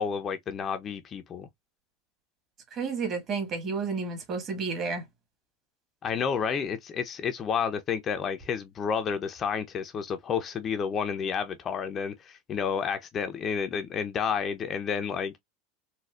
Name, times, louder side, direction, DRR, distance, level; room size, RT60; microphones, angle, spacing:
voice 1, 0.0-1.5 6.0-15.4, left 6 dB, 30° left, 0.5 m, -30 dB
voice 2, 2.7-5.0, right 4 dB, 40° right, 1.5 m, -31 dB
4.1 x 2.3 x 2.3 m
supercardioid pair, 135°, 0 cm